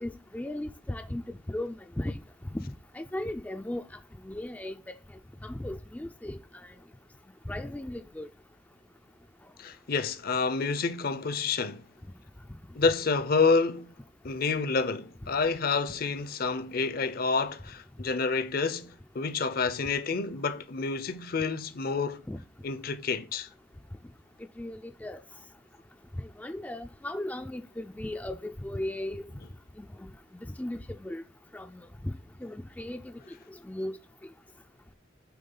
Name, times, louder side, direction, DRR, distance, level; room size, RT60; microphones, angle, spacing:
voice 1, 0.0-2.2 2.5-2.7 2.9-3.8 4.2-5.0 5.4-6.7 7.5-8.3 22.3-22.4 24.6-25.2 26.2-29.2 29.8-31.2 31.5-32.1 32.4-34.0, left 1 dB, 10° left, 0.3 m, -37 dB
voice 2, 9.6-11.9 12.7-13.9 14.2-22.2 22.6-23.5, left 4 dB, 50° left, 0.6 m, -28 dB
9.2 x 3.6 x 3.8 m
head